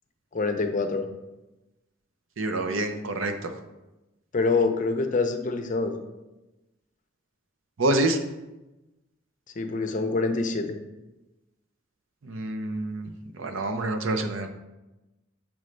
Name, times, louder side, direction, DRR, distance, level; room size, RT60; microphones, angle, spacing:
voice 1, 0.3-1.1 4.3-6.0 9.6-10.8, left 3 dB, 40° left, 7 dB, 0.6 m, -26 dB
voice 2, 2.4-3.5 7.8-8.2 12.2-13.1 13.4-14.5, right 2 dB, 90° right, 5 dB, 0.7 m, -27 dB
6.1 x 5.2 x 3.2 m, 1.0 s
head